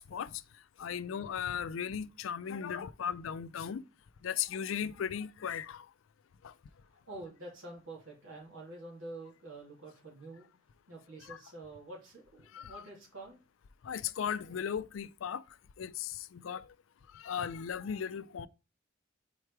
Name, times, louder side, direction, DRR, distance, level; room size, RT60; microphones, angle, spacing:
voice 1, 0.0-3.8 4.2-5.9 6.4-6.5 11.2-11.4 12.5-12.8 13.8-15.4 15.8-16.7 17.1-18.5, left 8 dB, 85° left, 0.4 m, -37 dB
voice 2, 7.1-10.5 10.9-13.4, right 2 dB, 85° right, 2.6 m, -47 dB
4.6 x 4.5 x 4.7 m
head